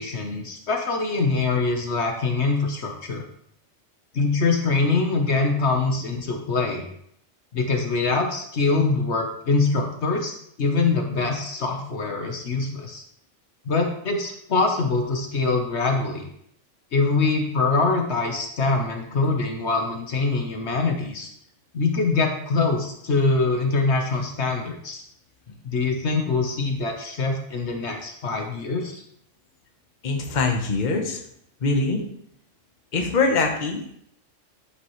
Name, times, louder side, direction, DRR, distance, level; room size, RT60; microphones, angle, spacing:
voice 1, 0.0-3.2 4.1-6.8 7.5-13.0 13.6-16.2 16.9-21.3 21.7-25.0 25.6-29.0, left 3 dB, 65° left, 3 dB, 1.3 m, -24 dB
voice 2, 30.0-31.2 31.6-32.0 32.9-33.9, left 3 dB, 40° left, 3 dB, 1.1 m, -23 dB
11.0 x 5.9 x 3.1 m, 0.70 s
omnidirectional pair, 1.3 m